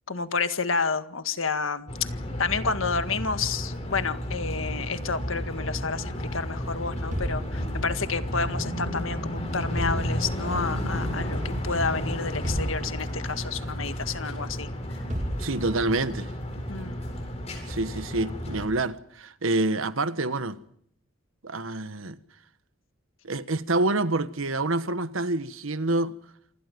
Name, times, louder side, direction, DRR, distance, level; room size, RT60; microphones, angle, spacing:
voice 1, 0.1-2.1 2.4-14.7 16.7-17.0, left 4 dB, 80° left, 1.8 m, -30 dB
sound 1, 1.9-18.7, equal, 30° left, 7.9 m, -32 dB
sound 2, 7.1-8.2 9.8-10.7 12.4-13.5 15.1-16.1, equal, 35° right, 2.3 m, -34 dB
voice 2, 15.4-16.3 17.7-20.6 21.4-22.2 23.2-26.1, right 2 dB, 80° right, 1.4 m, -27 dB
28.0 x 25.5 x 5.3 m
head